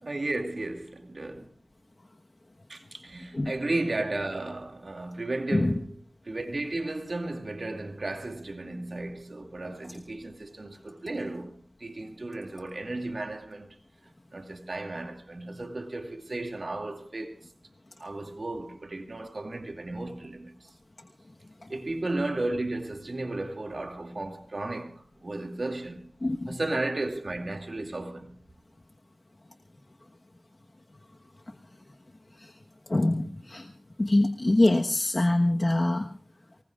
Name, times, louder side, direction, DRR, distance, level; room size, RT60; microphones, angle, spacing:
voice 1, 0.0-1.5 2.7-5.9 6.3-13.8 14.3-17.3 18.0-20.7 21.7-24.9 25.2-26.1 26.5-28.3, right 2 dB, 60° right, 2.5 m, -34 dB
voice 2, 26.2-26.6 32.4-32.5 32.9-33.7 34.0-36.1, left 1 dB, 45° left, 1.3 m, -24 dB
25.0 x 20.5 x 2.5 m
wide cardioid pair, 50°, 0 cm